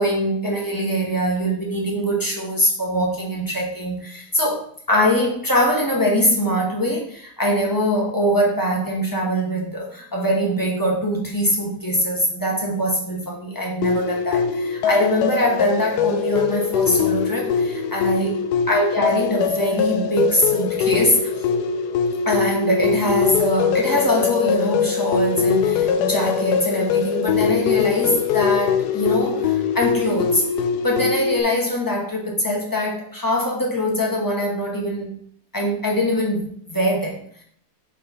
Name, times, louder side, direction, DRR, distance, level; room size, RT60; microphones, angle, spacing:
voice 1, 0.0-18.4 18.7-21.3 22.2-30.4 30.8-35.2 35.5-37.4, equal, 15° left, -2 dB, 1.3 m, -22 dB
sound 1, 13.8-31.4, left 6 dB, 90° left, 1.2 m, -22 dB
5.5 x 5.2 x 4.1 m, 0.62 s
omnidirectional pair, 1.7 m